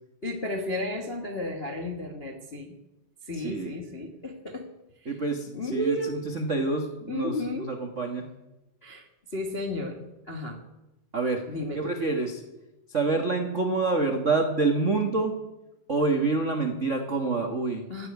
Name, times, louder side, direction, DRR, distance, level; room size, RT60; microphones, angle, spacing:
voice 1, 0.2-2.8 3.2-4.7 5.0-5.1 5.5-6.1 7.1-7.7 8.8-9.1 9.3-10.0 10.3-10.6 11.5-11.8 17.9-18.1, left 1 dB, 65° left, 2 dB, 0.6 m, -33 dB
voice 2, 3.3-3.8 5.0-8.3 11.1-11.4 11.7-12.4 12.9-15.3 15.9-17.8, right 3 dB, 90° right, 4 dB, 0.6 m, -27 dB
15.5 x 9.5 x 9.4 m, 0.97 s
omnidirectional pair, 3.9 m